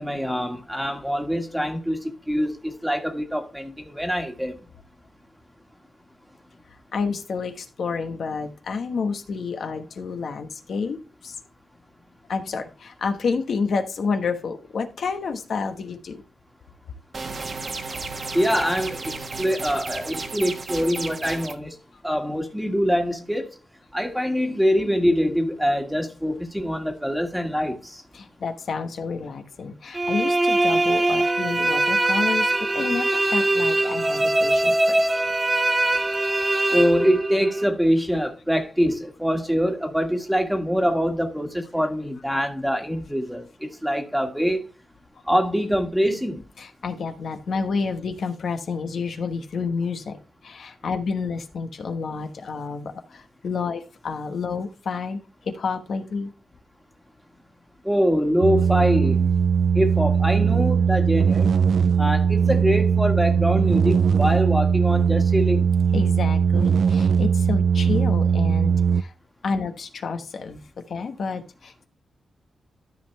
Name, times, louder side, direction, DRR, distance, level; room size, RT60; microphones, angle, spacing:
voice 1, 0.0-4.6 18.3-19.0 19.4-21.8 22.0-23.5 23.9-28.0 36.7-44.6 45.3-46.4 57.8-59.3 59.7-61.5 62.0-65.7, equal, ahead, 1.7 m, -24 dB
voice 2, 6.9-11.4 12.3-16.2 28.1-35.0 46.6-55.2 55.4-56.3 65.9-69.1 69.4-70.6 70.9-71.9, left 5 dB, 65° left, 1.2 m, -29 dB
sound 1, 17.1-21.5, right 3 dB, 45° right, 1.3 m, -33 dB
sound 2, 29.9-37.7, right 2 dB, 20° right, 0.7 m, -22 dB
sound 3, 58.4-69.0, right 6 dB, 70° right, 0.4 m, -20 dB
13.0 x 5.5 x 3.3 m
wide cardioid pair, 125°, 0 cm